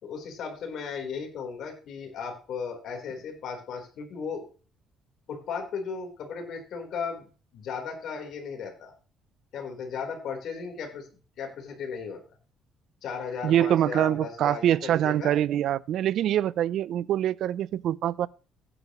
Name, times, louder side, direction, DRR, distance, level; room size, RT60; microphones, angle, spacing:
voice 1, 0.0-4.4 5.3-8.9 9.5-11.0 11.4-12.2 13.0-15.3, left 5 dB, 60° left, 4.0 m, -36 dB
voice 2, 13.4-18.3, right 11 dB, 60° right, 0.5 m, -24 dB
16.0 x 9.9 x 3.1 m
cardioid pair, 150°, 0 cm